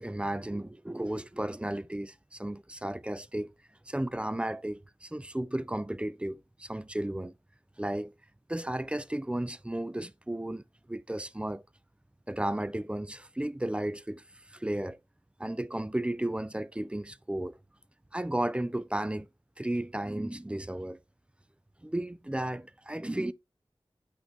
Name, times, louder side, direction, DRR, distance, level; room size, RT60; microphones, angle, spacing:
voice 1, 0.0-3.5 3.9-7.3 7.8-8.1 8.5-10.6 10.9-11.6 12.3-14.2 14.5-15.0 15.4-17.6 18.1-19.3 19.6-21.0 21.8-23.3, right 1 dB, 10° right, 0.4 m, -34 dB
8.2 x 4.0 x 3.0 m
wide cardioid pair, 60°, 9 cm